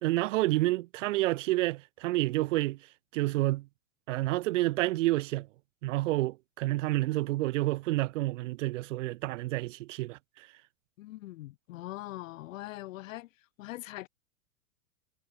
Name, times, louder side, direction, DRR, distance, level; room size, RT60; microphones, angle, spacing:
voice 1, 0.0-2.8 3.1-3.7 4.1-5.5 5.8-10.5, right 18 dB, 55° right, 1.3 m, -29 dB
voice 2, 11.0-13.3 13.6-14.1, left 17 dB, 55° left, 7.7 m, -42 dB
hypercardioid pair, 110°, 45 cm